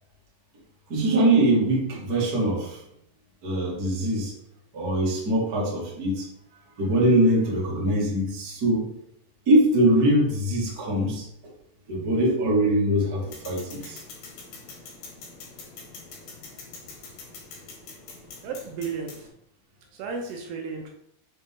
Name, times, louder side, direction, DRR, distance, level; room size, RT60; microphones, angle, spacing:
voice 1, 0.9-2.8 3.4-4.3 4.7-6.3 6.8-8.9 9.4-11.2 11.9-14.0, right 1 dB, 45° right, -5 dB, 1.2 m, -22 dB
sound 1, 13.3-19.3, left 4 dB, 65° left, 3.2 m, -44 dB
voice 2, 18.4-19.3 19.9-20.9, right 5 dB, 75° right, 2 dB, 2.7 m, -33 dB
7.0 x 4.2 x 3.7 m, 0.74 s
omnidirectional pair, 5.0 m